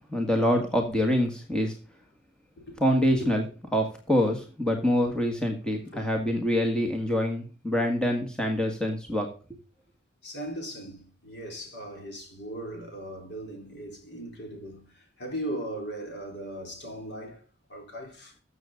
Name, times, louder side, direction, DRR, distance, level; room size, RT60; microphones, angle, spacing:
voice 1, 0.1-1.7 2.8-3.4 3.7-9.3, equal, 5° left, 1.8 m, -25 dB
voice 2, 10.2-17.4 17.7-18.4, right 1 dB, 55° left, 4.2 m, -38 dB
14.0 x 7.2 x 3.9 m
head